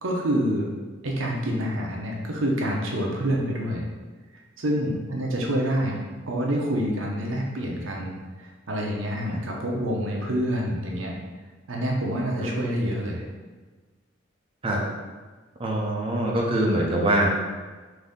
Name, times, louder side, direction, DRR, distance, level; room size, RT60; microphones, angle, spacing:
voice 1, 0.0-0.7 1.0-3.8 4.6-6.0 6.3-11.1 11.7-13.2, equal, 85° right, -1 dB, 0.7 m, -27 dB
voice 2, 15.6-17.3, right 1 dB, 30° right, -3 dB, 0.5 m, -23 dB
3.9 x 2.7 x 3.5 m, 1.3 s
head